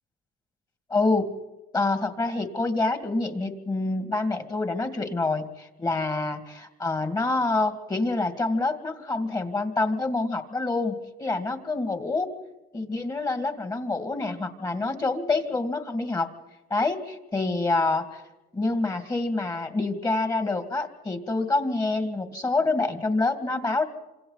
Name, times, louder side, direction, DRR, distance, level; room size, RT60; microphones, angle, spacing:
voice 1, 0.9-1.3 1.7-12.3 12.7-16.3 16.7-18.2 18.5-23.8, left 3 dB, 20° left, 8 dB, 2.2 m, -27 dB
28.0 x 26.5 x 4.1 m, 1.1 s
cardioid pair, 110°, 17 cm